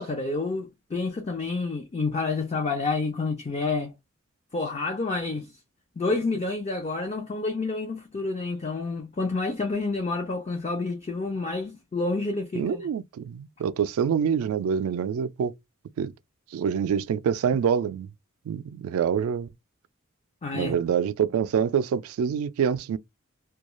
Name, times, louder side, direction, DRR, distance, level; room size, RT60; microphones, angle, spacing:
voice 1, 0.0-3.9 4.5-5.5 6.0-12.9 20.4-20.7, left 3 dB, 30° left, 0.4 m, -29 dB
voice 2, 12.5-15.5 16.0-16.1 16.5-18.1 18.5-19.5 20.5-23.0, right 7 dB, 90° right, 0.3 m, -26 dB
2.3 x 2.3 x 2.9 m
head